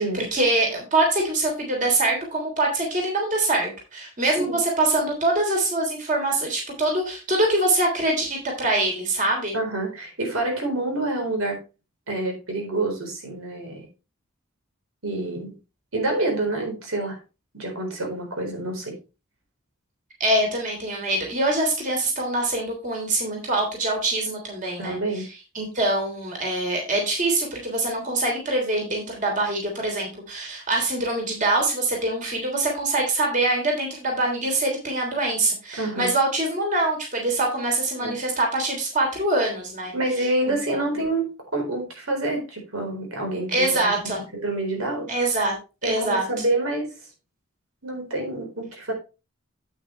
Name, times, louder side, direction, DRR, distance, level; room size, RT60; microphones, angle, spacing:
voice 1, 0.0-9.5 20.2-25.2 25.5-39.9 40.5-40.8 43.5-44.2 45.1-45.5 45.8-46.2, right 2 dB, 40° right, 1 dB, 3.2 m, -24 dB
voice 2, 9.5-11.6 12.1-13.9 15.0-15.5 15.9-17.2 17.5-18.9 24.8-25.2 35.8-36.1 38.0-38.2 39.9-43.9 44.3-45.1 45.8-46.9 47.8-48.9, right 2 dB, 90° right, 2 dB, 4.2 m, -27 dB
9.1 x 8.5 x 3.2 m, 0.29 s
head